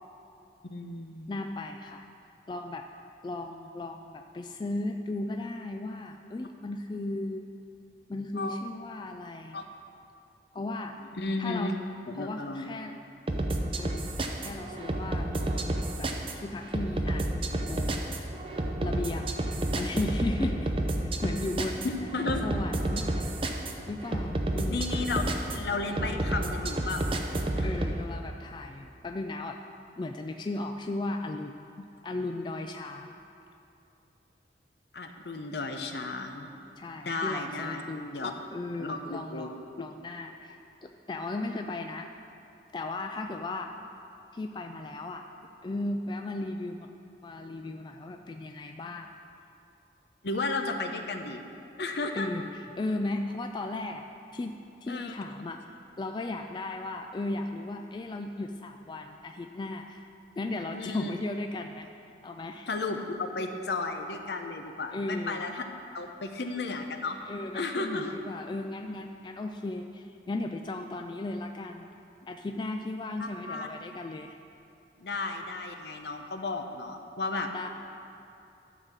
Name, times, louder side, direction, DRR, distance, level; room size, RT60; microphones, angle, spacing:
voice 1, 0.7-1.3 8.4-8.6 9.5-9.6 11.2-11.7 12.1-12.7 21.8-22.4 24.7-27.1 27.6-27.7 34.9-36.5 37.0-37.8 38.1-38.3 38.8-39.5 50.2-51.4 51.8-52.3 54.9-55.1 60.7-61.1 62.7-65.6 65.9-67.2 67.5-68.2 73.2-73.7 75.0-77.5, left 3 dB, 70° left, 5 dB, 0.7 m, -33 dB
voice 2, 1.3-2.1 2.5-2.9 3.2-7.5 8.1-9.6 10.5-11.0 11.4-11.7 12.2-12.9 13.8-16.1 16.4-18.3 18.8-19.4 19.7-20.7 21.0-21.9 22.4-23.3 23.9-24.9 27.6-29.6 30.0-33.1 36.8-42.1 42.7-43.7 44.3-45.2 45.6-46.9 47.2-49.1 52.1-54.1 54.3-60.1 60.4-61.9 62.2-62.7 64.9-65.4 67.2-71.9 72.3-74.3 77.5-77.7, left 2 dB, 25° left, 5 dB, 0.3 m, -36 dB
sound 1, 13.3-28.0, right 1 dB, 30° right, 0.6 m, -30 dB
12.0 x 4.1 x 7.3 m, 2.7 s
head